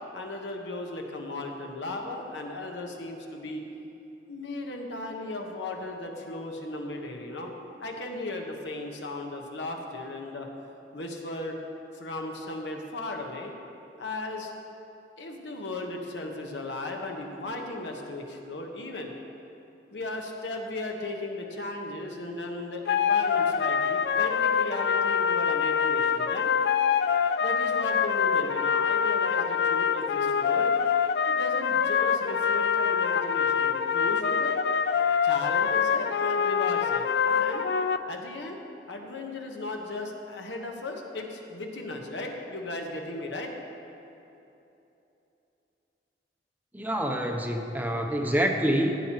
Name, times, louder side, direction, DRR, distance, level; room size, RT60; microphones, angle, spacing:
voice 1, 0.1-3.6 4.3-7.5 7.8-10.5 10.9-11.5 11.9-13.5 14.0-14.5 15.2-19.1 19.9-26.5 27.4-30.7 31.3-34.6 35.2-37.6 38.1-38.6 38.9-43.5, left 2 dB, 85° left, 2 dB, 1.1 m, -36 dB
sound 1, 22.9-38.0, left 7 dB, 65° left, 0.3 m, -25 dB
voice 2, 46.7-48.9, equal, 10° right, 3 dB, 0.6 m, -26 dB
15.5 x 8.5 x 3.0 m, 2.9 s
head